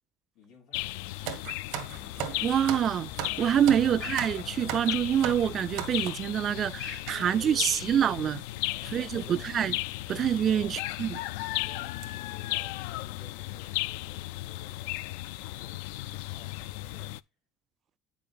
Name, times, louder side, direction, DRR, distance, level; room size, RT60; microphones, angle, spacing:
voice 1, 0.3-2.1 3.7-3.9 7.1-8.1 8.6-9.5 10.4-10.8 11.5-17.1, left 3 dB, 55° left, 5.2 m, -55 dB
sound 1, 0.7-17.2, left 17 dB, 90° left, 0.4 m, -36 dB
sound 2, 1.3-6.3 7.1-7.2 8.0-8.1 8.2-8.4 9.4-9.6 10.1-10.2 10.7-10.8 11.2-11.5 11.8-12.0, right 9 dB, 65° right, 1.9 m, -37 dB
sound 3, 1.9-6.0, left 6 dB, 10° left, 1.8 m, -50 dB
voice 2, 2.4-3.1 3.4-8.4 8.9-9.8 10.1-11.1, right 9 dB, 30° right, 0.3 m, -26 dB
10.5 x 7.0 x 2.4 m
cardioid pair, 160°, 0 cm